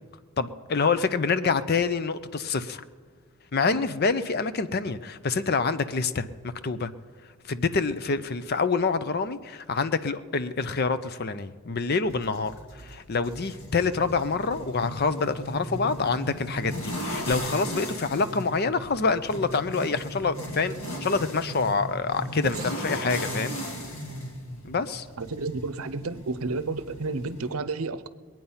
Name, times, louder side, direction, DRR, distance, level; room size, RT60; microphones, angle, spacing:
voice 1, 0.4-2.8 3.5-6.9 7.5-23.6 24.6-25.1, left 4 dB, 45° left, 0.6 m, -27 dB
sound 1, 12.0-27.5, equal, 70° left, 2.6 m, -37 dB
voice 2, 22.4-23.0 25.2-28.1, right 3 dB, 75° right, 0.7 m, -32 dB
22.0 x 9.1 x 5.6 m
head